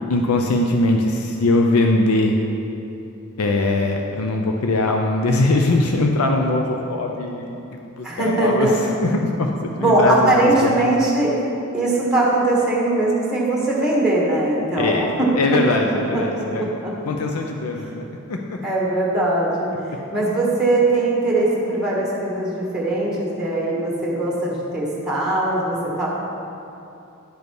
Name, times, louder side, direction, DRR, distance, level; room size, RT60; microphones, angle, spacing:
voice 1, 0.1-2.4 3.4-7.6 8.0-8.7 9.0-9.5 9.8-10.8 14.8-16.7 17.1-18.6, left 2 dB, 80° left, 2 dB, 0.6 m, -21 dB
voice 2, 8.0-8.7 9.8-11.3 11.7-15.1 16.1-16.2 16.6-16.9 18.6-19.7 20.1-26.1, right 2 dB, 5° right, -5 dB, 1.4 m, -20 dB
10.5 x 5.2 x 4.7 m, 2.8 s
head